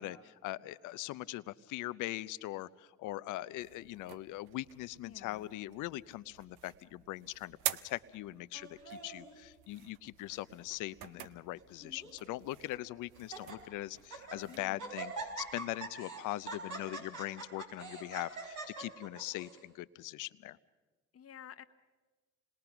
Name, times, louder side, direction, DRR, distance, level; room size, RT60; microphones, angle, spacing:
voice 1, 0.0-7.6 7.8-20.6, left 16 dB, 80° left, 17 dB, 0.6 m, -41 dB
sound 1, 3.6-14.7, right 14 dB, 90° right, 0.7 m, -47 dB
voice 2, 5.0-5.5 14.5-14.9 21.1-21.6, left 9 dB, 50° left, 9 dB, 1.0 m, -51 dB
Laughter, 8.5-9.4 10.1-10.4 10.7-10.8 11.6-12.2 12.7-12.8 13.2-13.6 14.0-14.4 14.8-19.6, right 3 dB, 75° right, 4.7 m, -44 dB
27.0 x 20.5 x 5.9 m, 1.3 s
supercardioid pair, 55°, 31 cm